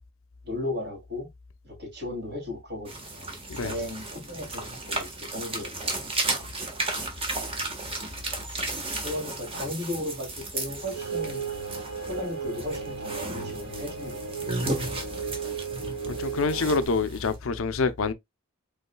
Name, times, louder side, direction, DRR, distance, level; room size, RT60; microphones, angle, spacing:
voice 1, 0.4-1.3 1.6-3.3 3.6-6.0 9.0-11.4 12.1-14.2, left 1 dB, 50° right, 2.7 m, -35 dB
sound 1, 2.8-17.4, right 2 dB, 25° right, 1.3 m, -34 dB
sound 2, 10.9-16.9, right 6 dB, 90° right, 2.5 m, -35 dB
voice 2, 16.1-18.1, left 4 dB, 65° left, 0.5 m, -26 dB
5.4 x 4.1 x 2.2 m
head